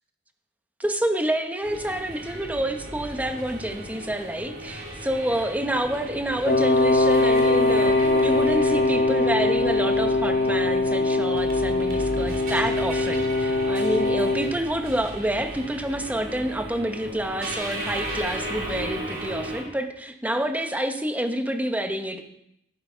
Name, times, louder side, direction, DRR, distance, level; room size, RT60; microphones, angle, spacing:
voice 1, 0.8-22.2, right 1 dB, 10° right, 6 dB, 0.9 m, -28 dB
sound 1, 1.6-19.6, right 1 dB, 55° right, 2.9 m, -35 dB
Wind instrument woodwind instrument, 6.5-14.5, left 2 dB, 45° left, 0.6 m, -22 dB
12.5 x 6.8 x 5.6 m, 0.77 s
head